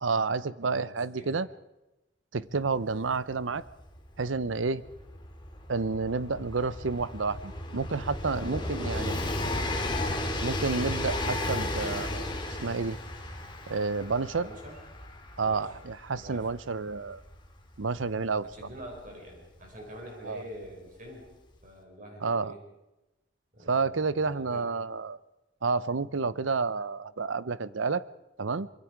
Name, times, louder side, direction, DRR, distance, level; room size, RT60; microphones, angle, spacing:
voice 1, 0.0-1.5 2.3-3.6 4.2-4.8 5.7-9.1 10.4-12.3 12.6-13.0 13.7-14.5 15.4-17.2 17.8-18.4 20.3-20.4 22.2-22.5 23.7-25.2 25.6-28.0 28.4-28.7, right 4 dB, 90° right, 17 dB, 0.8 m, -30 dB
voice 2, 0.6-1.4 8.3-9.6 10.0-10.3 14.4-14.8 15.4-15.7 16.2-16.5 18.4-21.3 21.6-22.7 23.5-24.9, equal, 45° right, 1 dB, 5.4 m, -46 dB
Train, 2.8-2.9 3.0-19.7 20.6-20.7, left 1 dB, 25° left, 2.5 m, -35 dB
25.5 x 23.0 x 4.7 m, 0.96 s
head